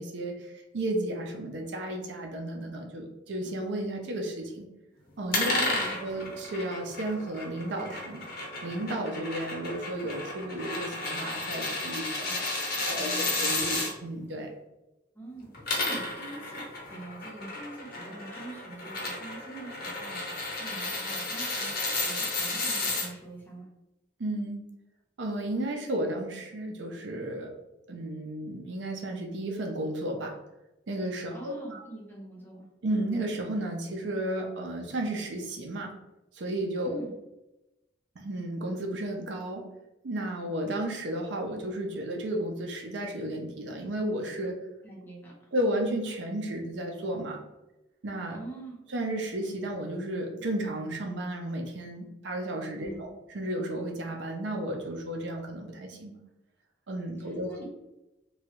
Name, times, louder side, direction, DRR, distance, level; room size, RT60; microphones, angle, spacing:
voice 1, 0.0-4.7 5.2-8.2 8.6-12.4 12.9-14.5 24.2-24.6 25.2-27.5 27.9-30.4 30.9-31.8 32.8-35.9 36.3-37.0 38.2-39.6 40.0-44.5 45.5-47.4 48.0-48.4 48.9-53.1 53.3-56.2 56.9-57.5, right 1 dB, 80° right, 2 dB, 0.5 m, -33 dB
sound 1, 5.3-13.9 15.4-23.1, left 2 dB, 55° left, 0.9 m, -32 dB
voice 2, 5.5-6.2 12.2-12.5 12.9-13.9 15.1-16.6 16.9-23.7 31.3-32.7 36.8-37.2 44.8-45.3 48.3-48.8 52.8-53.1 57.2-57.6, right 2 dB, 10° left, -4 dB, 0.9 m, -44 dB
3.0 x 2.3 x 2.9 m, 0.95 s
head